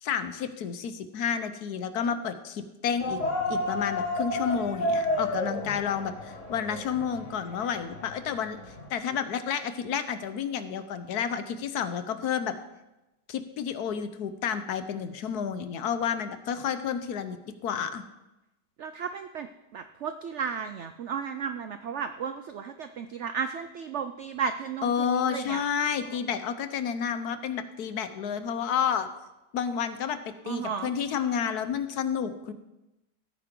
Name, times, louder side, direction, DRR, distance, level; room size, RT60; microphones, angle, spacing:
voice 1, 0.0-3.2 3.5-8.6 8.9-12.5 13.3-17.4 17.6-18.0 24.8-29.1 29.5-30.2 30.4-32.5, left 7 dB, 70° left, 11 dB, 1.2 m, -30 dB
sound 1, 3.0-8.9, left 1 dB, 45° left, 1.8 m, -32 dB
voice 2, 18.8-19.5 19.7-25.6 30.5-30.9, right 6 dB, 80° right, 9 dB, 0.6 m, -34 dB
16.0 x 9.3 x 3.7 m, 0.97 s
omnidirectional pair, 1.9 m